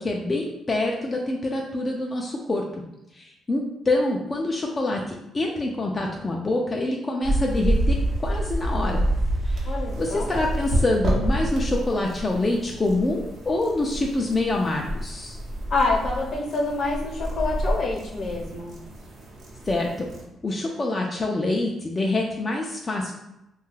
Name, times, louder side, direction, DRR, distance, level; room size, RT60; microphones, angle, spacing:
voice 1, 0.0-2.6 3.1-9.0 9.4-9.7 10.0-15.4 19.7-20.1 20.4-23.1, left 2 dB, 25° left, -1 dB, 0.3 m, -26 dB
sound 1, 7.2-20.2, right 1 dB, 60° right, 0.8 m, -28 dB
voice 2, 9.7-10.3 15.7-18.8, left 3 dB, 60° left, -2 dB, 0.8 m, -26 dB
2.8 x 2.3 x 3.1 m, 0.88 s
cardioid pair, 90°, 0 cm